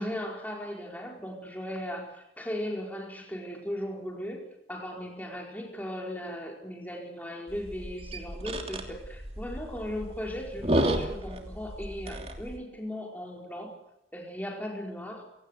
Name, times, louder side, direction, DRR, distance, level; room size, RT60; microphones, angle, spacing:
voice 1, 0.0-4.4 4.7-13.7 14.1-15.2, equal, 10° left, 1 dB, 4.6 m, -37 dB
sound 1, 7.5-12.6, right 1 dB, 35° right, 3.0 m, -32 dB
28.0 x 17.5 x 8.1 m, 0.85 s
head